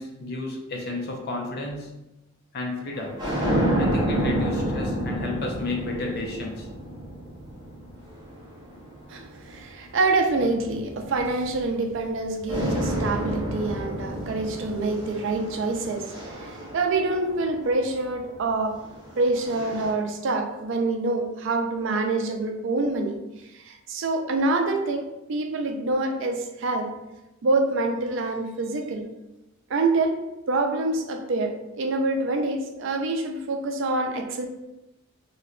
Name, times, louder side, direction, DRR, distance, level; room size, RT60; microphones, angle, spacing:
voice 1, 0.0-2.0 2.5-3.2 3.8-6.7, left 2 dB, 50° left, 0 dB, 0.6 m, -32 dB
sound 1, 2.9-9.5 10.3-12.1 12.5-17.8 18.8-19.9, right 1 dB, 20° right, 0.7 m, -30 dB
voice 2, 9.1-18.8 19.2-23.2 23.6-26.9 27.4-29.1 29.7-34.5, right 2 dB, 60° right, 4 dB, 0.4 m, -26 dB
2.8 x 2.2 x 3.7 m, 0.95 s
head